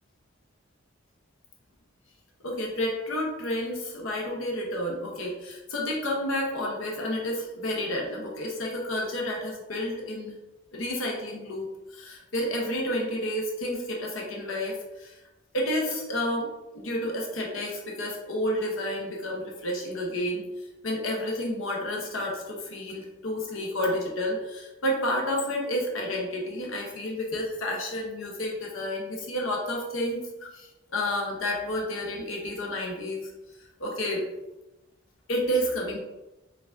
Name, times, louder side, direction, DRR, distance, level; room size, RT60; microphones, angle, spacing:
voice 1, 2.4-10.4 10.7-15.1 15.5-16.5 16.7-20.4 20.8-33.2 33.8-34.2 35.3-36.0, left 1 dB, 70° left, -1 dB, 0.8 m, -30 dB
4.6 x 3.4 x 2.5 m, 1.0 s
head